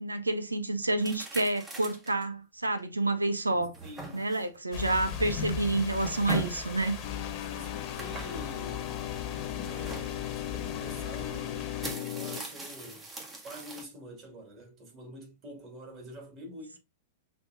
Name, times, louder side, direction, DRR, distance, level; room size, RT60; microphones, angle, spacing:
voice 1, 0.0-3.7 4.1-7.0, right 2 dB, 85° right, 0.5 m, -29 dB
sound 1, 1.0-2.2 2.8-2.9 3.4-4.6 5.7-6.7 8.0-8.6 9.6-10.1 11.2-11.3 11.6-13.8, right 2 dB, 15° right, 1.3 m, -41 dB
voice 2, 3.8-4.2 7.4-9.0 9.7-10.3 10.7-13.1 13.4-16.8, equal, 30° right, 2.4 m, -46 dB
sound 2, 4.7-11.9, left 7 dB, 35° left, 1.3 m, -38 dB
sound 3, 7.0-12.4, left 14 dB, 50° left, 0.5 m, -38 dB
6.1 x 3.1 x 2.6 m
figure-of-eight pair, 100°, 0 cm